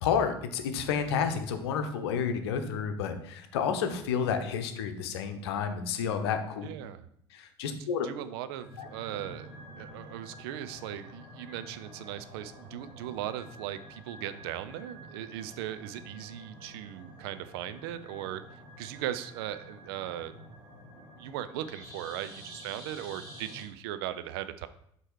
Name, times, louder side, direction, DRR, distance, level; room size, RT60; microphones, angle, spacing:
voice 1, 0.0-6.7 7.3-8.1 8.8-8.9, left 7 dB, 65° left, 8 dB, 0.8 m, -30 dB
voice 2, 6.6-7.1 7.8-20.3 20.9-24.7, right 12 dB, 60° right, 12 dB, 0.5 m, -38 dB
sound 1, 8.5-23.6, equal, 25° right, 2.5 m, -49 dB
7.7 x 3.0 x 4.6 m, 0.70 s
figure-of-eight pair, 70°, 14 cm